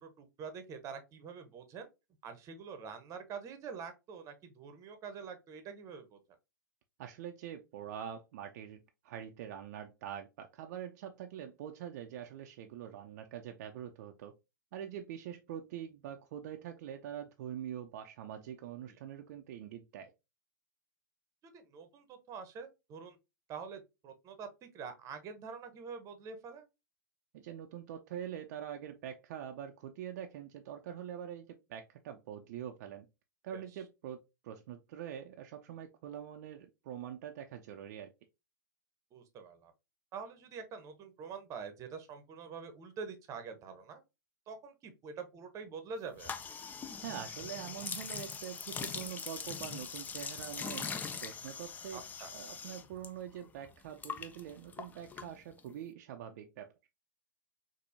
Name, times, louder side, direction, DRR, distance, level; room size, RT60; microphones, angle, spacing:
voice 1, 0.0-1.9 2.2-6.2 18.9-19.0 21.5-23.2 23.5-26.7 33.5-33.6 39.1-39.7 40.1-44.0 44.5-46.3 51.9-52.3, right 5 dB, 30° right, 0.8 m, -46 dB
voice 2, 7.0-14.3 14.7-20.1 27.3-33.1 33.4-34.2 34.4-38.1 47.0-52.0 52.3-56.7, right 10 dB, 55° right, 0.4 m, -44 dB
sound 1, 46.2-53.1 53.3-55.7, left 6 dB, 15° left, 0.4 m, -42 dB
4.3 x 2.6 x 2.6 m
hypercardioid pair, 110°, 10 cm